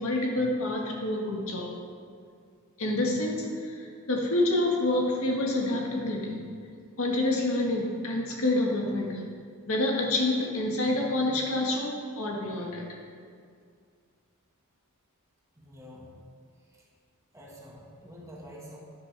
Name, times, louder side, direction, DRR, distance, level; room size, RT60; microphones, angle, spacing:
voice 1, 0.0-1.7 2.8-6.4 7.0-9.2 9.7-12.8, left 2 dB, 65° left, -1 dB, 1.9 m, -27 dB
voice 2, 15.6-16.1 16.7-16.9 17.3-18.8, equal, 15° right, -4 dB, 1.9 m, -47 dB
12.5 x 11.0 x 3.6 m, 2.2 s
head